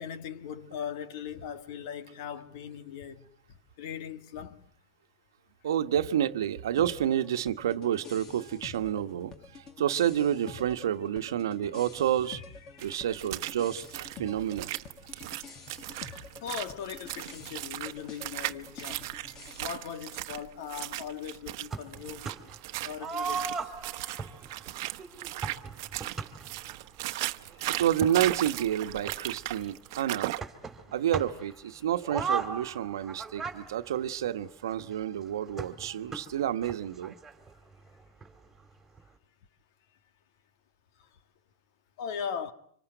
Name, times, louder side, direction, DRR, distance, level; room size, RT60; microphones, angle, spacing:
voice 1, 0.0-3.3 3.8-4.6 11.6-11.7 12.3-13.1 15.1-15.4 15.7-22.3 22.8-23.7 24.0-24.3 25.4-25.6 26.0-26.1 27.5-27.6 31.8-31.9 41.0-41.1 42.0-42.5, left 8 dB, 60° left, 2.3 m, -40 dB
voice 2, 5.6-12.4 12.8-14.7 27.4-30.3 30.9-37.1, right 10 dB, 80° right, 1.3 m, -29 dB
sound 1, 6.8-19.7, left 4 dB, 30° left, 2.6 m, -48 dB
sound 2, 12.8-30.4, right 18 dB, 55° right, 1.1 m, -37 dB
sound 3, 21.7-22.6 23.0-26.8 27.5-27.6 27.9-29.8 30.4-31.5 32.0-34.8 35.6-37.5 37.9-38.0 38.2-38.3 39.0-39.1, right 5 dB, 10° right, 2.9 m, -37 dB
26.0 x 24.5 x 8.0 m
hypercardioid pair, 135°, 2 cm